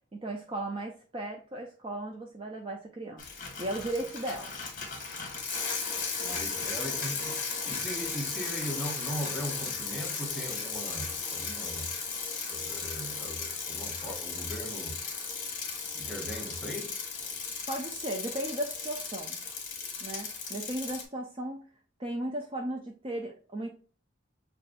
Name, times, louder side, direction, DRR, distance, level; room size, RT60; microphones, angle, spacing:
voice 1, 0.2-3.2 3.6-4.5 4.8-4.9 6.2-6.4 17.7-19.4 20.0-21.6 22.0-23.7, right 1 dB, 25° right, 0.4 m, -36 dB
Bicycle, 3.2-21.0, left 5 dB, 45° left, 1.0 m, -36 dB
voice 2, 6.3-11.9 12.5-15.0 15.9-17.0, equal, ahead, 0.7 m, -39 dB
6.3 x 2.3 x 2.4 m
head